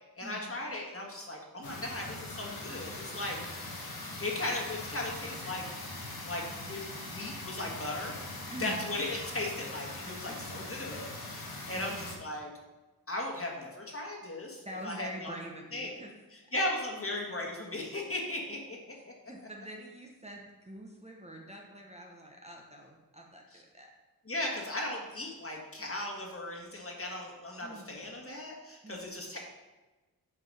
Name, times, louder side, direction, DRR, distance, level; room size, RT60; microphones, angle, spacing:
voice 1, 0.2-3.8 4.2-5.7 6.2-8.2 8.6-12.5 13.1-15.3 15.7-15.9 16.5-18.9 24.2-29.4, left 1 dB, 35° left, 0 dB, 1.6 m, -37 dB
sound 1, 1.6-12.2, left 2 dB, 75° left, 1.4 m, -42 dB
voice 2, 8.5-8.8 10.2-10.4 11.8-12.1 14.6-16.1 19.2-23.9 27.6-28.0 28.8-29.1, right 1 dB, 15° right, 0 dB, 1.0 m, -45 dB
7.0 x 4.6 x 5.4 m, 1.2 s
wide cardioid pair, 75°, 37 cm